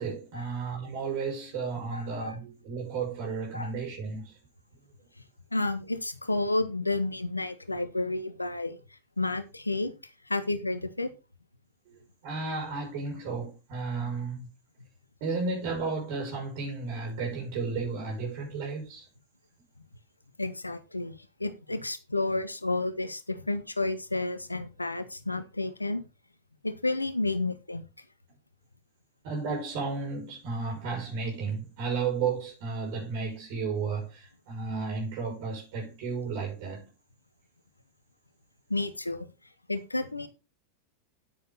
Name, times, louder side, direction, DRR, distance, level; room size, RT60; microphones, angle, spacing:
voice 1, 0.0-4.3 11.9-14.5 15.2-19.0 29.2-36.9, right 4 dB, 50° right, 6.3 m, -33 dB
voice 2, 1.9-2.4 3.5-3.7 5.5-8.8 9.2-9.9 10.3-11.1 20.4-26.0 26.6-27.8 38.7-39.3 39.7-40.3, left 2 dB, 85° left, 1.4 m, -31 dB
9.3 x 9.1 x 4.0 m
figure-of-eight pair, 90°, 0 cm